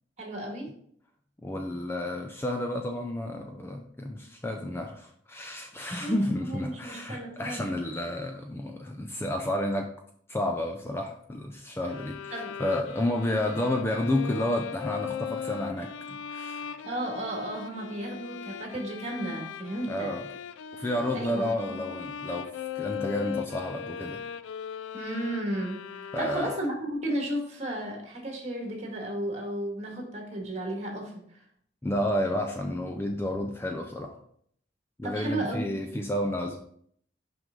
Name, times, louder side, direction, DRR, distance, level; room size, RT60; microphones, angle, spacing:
voice 1, 0.2-0.7 6.0-7.6 12.3-12.5 16.8-20.1 21.1-21.8 24.9-31.4 35.0-35.7, right 1 dB, 35° right, 0 dB, 1.8 m, -34 dB
voice 2, 1.4-9.9 10.3-16.7 19.9-20.2 20.8-22.5 22.8-24.2 26.1-26.5 31.8-34.1 35.0-36.6, left 1 dB, 10° left, 3 dB, 0.4 m, -31 dB
sound 1, 11.9-27.0, left 8 dB, 80° left, 0.3 m, -39 dB
6.1 x 5.4 x 3.7 m, 0.64 s
head